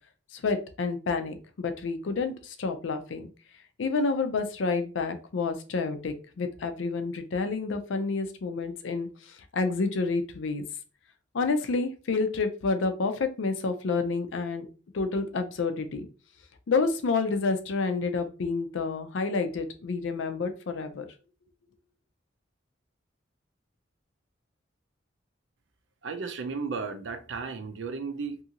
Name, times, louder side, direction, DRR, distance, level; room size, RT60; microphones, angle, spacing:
voice 1, 0.3-3.3 3.8-10.7 11.3-14.7 14.9-16.1 16.7-21.1, left 4 dB, 80° left, 0.4 m, -29 dB
voice 2, 26.0-28.4, right 4 dB, 75° right, 0.5 m, -34 dB
2.7 x 2.5 x 2.7 m
head